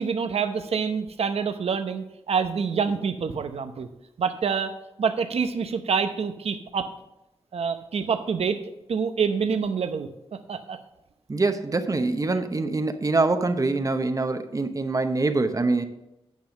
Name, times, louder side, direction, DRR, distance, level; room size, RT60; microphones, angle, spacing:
voice 1, 0.0-3.9 4.2-4.7 5.0-6.9 7.5-8.6 8.9-10.1 10.5-10.8, right 6 dB, 80° right, 8 dB, 0.8 m, -26 dB
voice 2, 11.3-15.9, right 3 dB, 35° right, 8 dB, 0.8 m, -24 dB
9.5 x 5.6 x 6.3 m, 0.89 s
wide cardioid pair, 90°, 10 cm